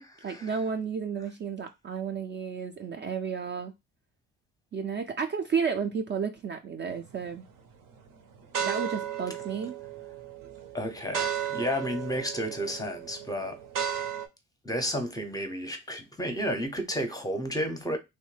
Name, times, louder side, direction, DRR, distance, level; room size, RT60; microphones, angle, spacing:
voice 1, 0.0-3.7 4.7-7.4 8.6-9.7, right 6 dB, 35° right, 0.4 m, -32 dB
sound 1, 6.9-7.4 7.9-14.3, right 9 dB, 75° right, 0.7 m, -35 dB
voice 2, 10.7-13.6 14.6-18.0, equal, 10° left, 0.6 m, -32 dB
3.1 x 2.1 x 3.1 m
cardioid pair, 105°, 32 cm